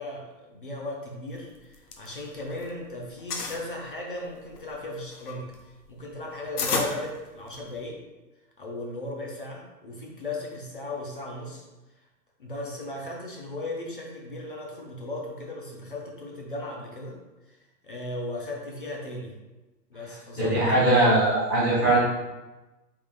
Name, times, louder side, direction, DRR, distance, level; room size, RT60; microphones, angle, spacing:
voice 1, 0.0-5.5 5.9-8.0 8.6-11.6 12.4-17.1 17.5-17.6 17.8-19.3 19.9-20.9, left 2 dB, 35° left, -1 dB, 0.5 m, -36 dB
sound 1, 1.5-2.7 3.0-3.6 4.2-7.8, left 4 dB, 65° left, 0.8 m, -32 dB
voice 2, 20.4-22.0, right 2 dB, 10° left, -14 dB, 1.0 m, -21 dB
4.7 x 3.6 x 2.4 m, 1.1 s
hypercardioid pair, 170°, 49 cm